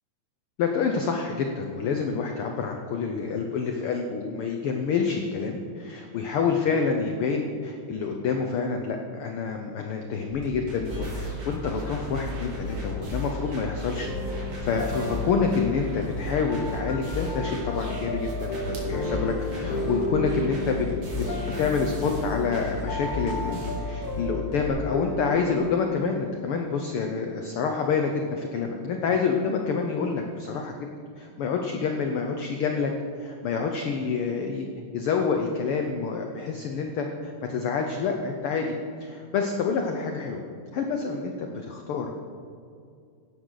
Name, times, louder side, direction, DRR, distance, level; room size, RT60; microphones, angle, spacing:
voice 1, 0.6-20.9 21.4-30.9 31.2-32.9 33.2-34.7 34.9-38.7 39.0-40.4 40.7-42.1, left 5 dB, 90° left, 3 dB, 1.2 m, -28 dB
sound 1, 10.7-24.7, left 2 dB, 75° right, 4.8 m, -34 dB
sound 2, 14.0-25.5, equal, 60° left, 1.0 m, -34 dB
sound 3, 18.7-20.2 21.1-23.3, right 2 dB, 60° right, 3.4 m, -51 dB
15.5 x 11.0 x 4.0 m, 2.3 s
omnidirectional pair, 3.6 m